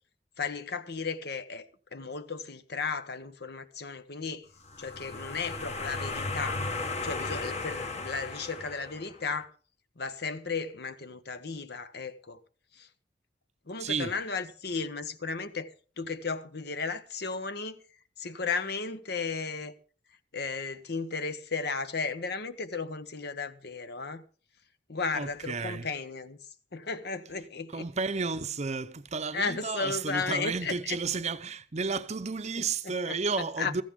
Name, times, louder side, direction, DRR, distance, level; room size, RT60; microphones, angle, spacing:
voice 1, 0.4-4.5 4.8-6.7 7.0-9.5 10.0-12.4 12.7-12.9 13.7-15.7 16.0-17.8 18.2-19.7 20.3-24.2 24.9-26.4 26.7-27.9 29.3-31.0 32.6-33.2 33.6-33.8, left 4 dB, 60° left, 1.1 m, -35 dB
sound 1, 4.6-9.3, left 3 dB, 40° left, 1.5 m, -35 dB
voice 2, 13.8-14.2 25.1-25.9 27.7-33.8, right 4 dB, 40° right, 0.7 m, -32 dB
16.0 x 14.5 x 3.7 m
head